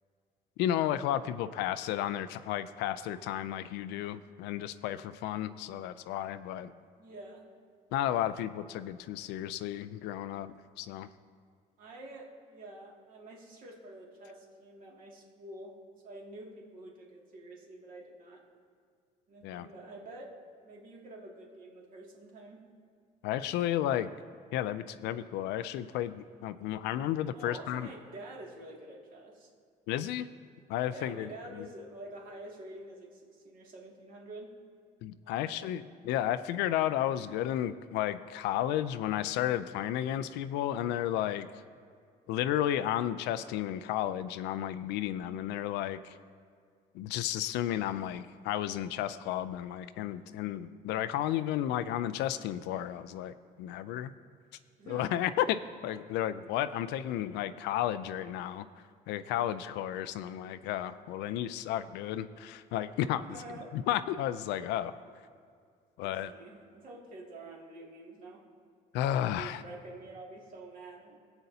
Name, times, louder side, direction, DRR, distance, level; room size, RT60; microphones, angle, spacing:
voice 1, 0.6-6.7 7.9-11.1 19.4-19.7 23.2-24.1 24.5-27.9 29.9-30.3 30.7-31.7 35.0-41.5 42.3-46.2 46.9-54.1 54.9-58.7 59.1-63.4 63.7-65.0 66.0-66.3 68.9-69.6, left 12 dB, 90° left, 12 dB, 0.4 m, -33 dB
voice 2, 7.0-7.4 11.8-15.7 16.0-18.4 19.3-20.3 20.6-22.6 27.3-29.5 30.9-34.5 35.2-35.7 54.8-55.1 63.3-63.7 65.1-65.2 66.0-68.4 69.3-71.2, right 2 dB, 55° right, -2 dB, 2.3 m, -48 dB
18.0 x 8.0 x 2.8 m, 2.2 s
cardioid pair, 110°, 17 cm